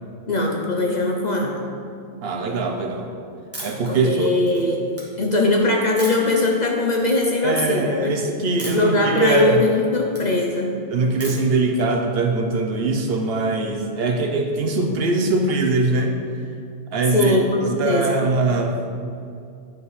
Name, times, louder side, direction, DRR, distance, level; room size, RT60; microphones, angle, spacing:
voice 1, 0.3-1.7 3.9-4.8 5.2-8.2 8.7-10.8 17.1-18.3, left 2 dB, 50° left, 0 dB, 0.6 m, -21 dB
voice 2, 2.2-3.1 3.6-4.3 7.4-9.6 10.9-16.1 16.9-17.4 17.8-18.8, right 3 dB, 65° right, 3 dB, 0.8 m, -22 dB
sound 1, 3.5-3.9 4.4-5.0 6.0-6.4 6.9-7.2 7.5-7.7 8.6-8.9 9.3-10.2 11.2-11.6, right 1 dB, 10° right, 1.4 m, -36 dB
9.1 x 5.6 x 3.2 m, 2.4 s
omnidirectional pair, 1.2 m